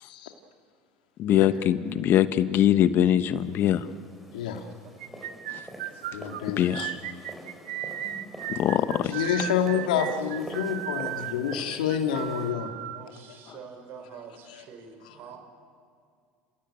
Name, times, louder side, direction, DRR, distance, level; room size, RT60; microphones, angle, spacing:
voice 1, 0.0-0.3 1.3-1.5 4.3-4.6 6.1-7.0 9.1-12.7, left 8 dB, 90° left, 5 dB, 2.1 m, -28 dB
voice 2, 1.2-3.9 5.5-5.6 6.5-6.9 8.5-9.1, left 11 dB, 55° left, 12 dB, 1.1 m, -22 dB
sound 1, 3.3-12.5, equal, ahead, 4.0 m, -46 dB
voice 3, 4.5-4.9 5.9-6.0 8.9-11.2 12.9-15.4, right 6 dB, 60° right, 5 dB, 5.3 m, -46 dB
sound 2, 5.0-13.0, right 13 dB, 85° right, 1.1 m, -36 dB
29.5 x 16.5 x 8.8 m, 2.2 s
supercardioid pair, 85°, 4 cm